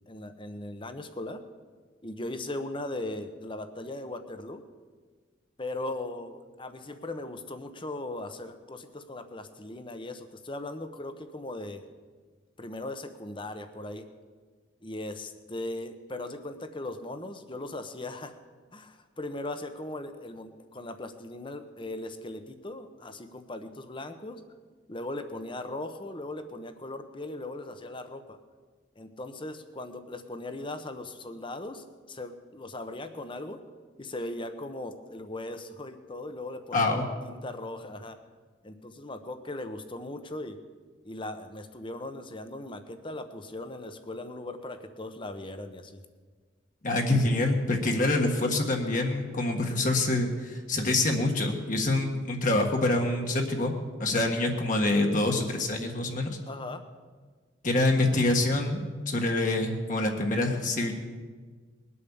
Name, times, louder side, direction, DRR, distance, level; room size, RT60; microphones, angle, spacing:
voice 1, 0.1-1.4 2.0-4.6 5.6-11.8 12.6-14.1 14.8-18.4 18.7-24.4 24.9-28.4 29.0-33.6 34.0-36.9 37.2-38.2 38.6-40.6 41.0-46.0 47.8-48.0 56.5-56.8, left 2 dB, 25° left, 9 dB, 1.0 m, -38 dB
voice 2, 36.7-37.1 46.8-53.7 54.0-56.4 57.6-58.8 59.1-60.9, left 2 dB, 45° left, 2 dB, 1.6 m, -26 dB
21.0 x 8.6 x 7.1 m, 1.5 s
head